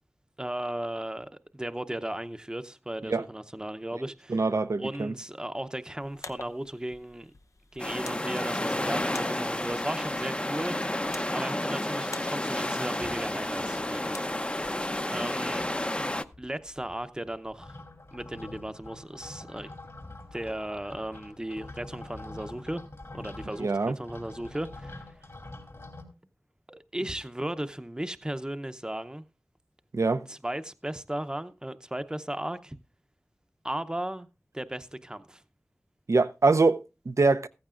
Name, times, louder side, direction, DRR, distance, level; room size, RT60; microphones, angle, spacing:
voice 1, 0.4-4.4 4.8-7.3 7.7-10.9 11.3-14.6 15.1-15.7 16.4-17.8 18.1-19.7 20.3-22.8 23.1-25.0 26.7-29.2 30.3-32.8 33.6-34.3 34.5-35.4, right 1 dB, 15° right, 0.7 m, -36 dB
voice 2, 4.3-5.1 23.6-23.9 29.9-30.2 36.1-37.5, right 3 dB, 75° right, 0.6 m, -24 dB
sound 1, 6.0-15.0, left 3 dB, 85° left, 0.8 m, -48 dB
sound 2, 7.8-16.2, left 1 dB, 20° left, 0.7 m, -31 dB
sound 3, 13.0-13.9 14.3-14.4 14.5-15.2 15.5-26.0, left 2 dB, 65° left, 2.8 m, -46 dB
14.5 x 14.5 x 2.5 m
wide cardioid pair, 45°, 5 cm